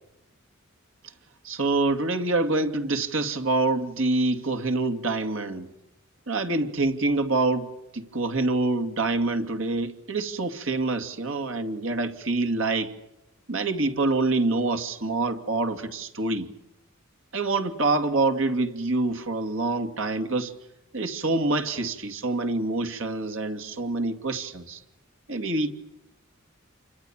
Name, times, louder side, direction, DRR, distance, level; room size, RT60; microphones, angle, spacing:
voice 1, 1.4-5.7 6.3-12.9 13.5-16.5 17.3-20.5 20.9-24.8 25.3-25.7, right 2 dB, 65° right, 2.6 m, -26 dB
28.5 x 26.0 x 7.5 m
head